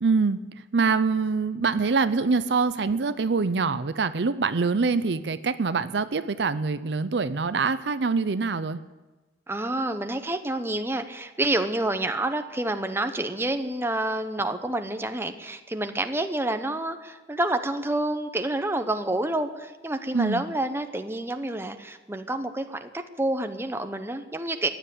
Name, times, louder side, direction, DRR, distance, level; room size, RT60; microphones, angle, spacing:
voice 1, 0.0-0.4 0.7-8.8 20.1-20.4, right 4 dB, 70° right, 13 dB, 0.6 m, -24 dB
voice 2, 9.5-24.7, right 1 dB, 15° right, 8 dB, 0.9 m, -28 dB
15.0 x 10.0 x 8.4 m, 1.2 s
head